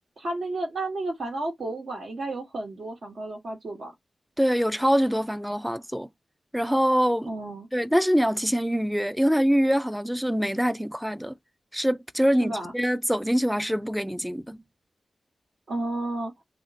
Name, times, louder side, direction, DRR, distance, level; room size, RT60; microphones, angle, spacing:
voice 1, 0.2-3.9 7.3-7.7 12.4-12.7 15.7-16.3, right 2 dB, 75° right, 1.2 m, -32 dB
voice 2, 4.4-6.1 6.5-7.3 7.7-11.3 11.7-14.6, equal, ahead, 0.4 m, -24 dB
3.5 x 2.1 x 2.8 m
cardioid pair, 40°, 0 cm